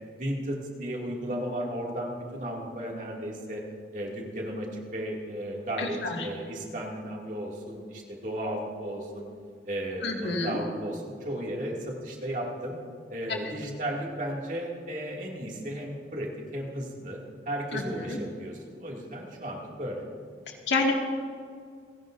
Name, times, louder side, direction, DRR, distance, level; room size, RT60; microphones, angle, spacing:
voice 1, 0.2-3.6 3.9-9.3 9.7-12.7 13.1-17.2 17.5-20.0, right 1 dB, 45° right, -2 dB, 2.4 m, -34 dB
voice 2, 5.8-6.3 10.0-10.6 13.3-13.4 17.7-17.8 18.1-18.2 20.7-20.9, left 3 dB, 85° left, 1 dB, 2.0 m, -28 dB
28.5 x 11.0 x 2.6 m, 2.1 s
head